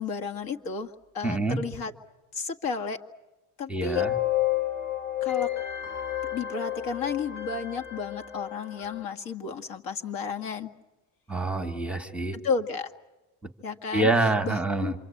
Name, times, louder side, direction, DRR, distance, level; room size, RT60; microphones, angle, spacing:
voice 1, 0.0-1.9 2.3-3.0 3.6-4.1 5.2-5.5 6.3-10.7 12.4-12.9 13.6-14.1 14.4-14.9, left 5 dB, 60° left, 5 dB, 2.0 m, -32 dB
voice 2, 1.2-1.6 3.7-4.2 11.3-12.4 13.9-14.9, right 2 dB, 5° right, 5 dB, 1.4 m, -26 dB
sound 1, 3.9-9.0, left 13 dB, 25° left, 1.5 m, -30 dB
27.5 x 25.0 x 8.7 m, 1.1 s
cardioid pair, 155°, 40 cm